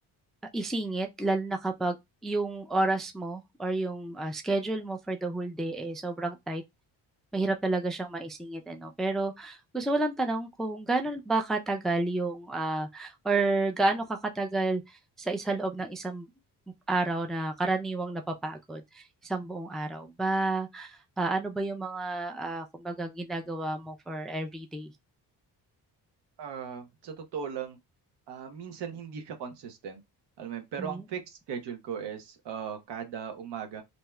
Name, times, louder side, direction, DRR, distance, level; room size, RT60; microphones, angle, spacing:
voice 1, 0.5-2.0 2.2-6.6 7.3-16.3 16.9-24.9 30.8-31.0, right 2 dB, ahead, 0.3 m, -30 dB
voice 2, 26.4-27.8 28.3-30.0 30.4-33.8, right 7 dB, 80° right, 1.0 m, -38 dB
2.8 x 2.3 x 3.1 m
cardioid pair, 100°, 41 cm